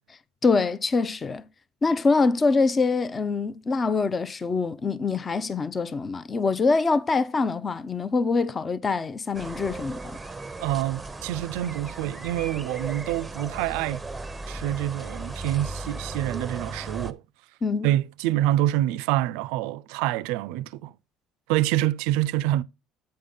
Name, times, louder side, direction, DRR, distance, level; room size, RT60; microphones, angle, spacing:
voice 1, 0.4-1.5 1.8-10.2 17.6-17.9, left 4 dB, 25° left, 0.5 m, -24 dB
sound 1, 9.3-17.1, right 3 dB, 10° right, 0.7 m, -36 dB
voice 2, 10.6-14.0 14.5-17.2 17.8-20.9 21.5-22.6, right 14 dB, 85° right, 0.4 m, -26 dB
8.6 x 3.6 x 5.4 m
cardioid pair, 115°, 0 cm